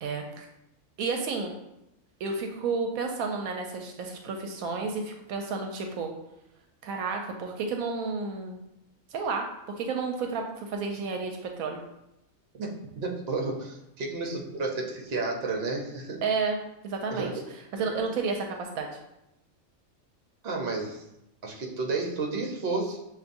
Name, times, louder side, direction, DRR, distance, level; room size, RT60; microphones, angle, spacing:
voice 1, 0.0-0.5 1.0-1.5 2.2-6.1 6.8-8.6 9.1-9.5 9.8-11.8 16.2-16.6 16.8-17.3 17.7-18.9, right 4 dB, 80° right, 3 dB, 1.0 m, -31 dB
voice 2, 12.5-16.2 17.1-17.3 17.8-18.0 20.4-21.0 21.4-23.0, right 3 dB, 50° right, 0 dB, 0.9 m, -32 dB
6.8 x 2.6 x 2.6 m, 0.87 s
omnidirectional pair, 1.5 m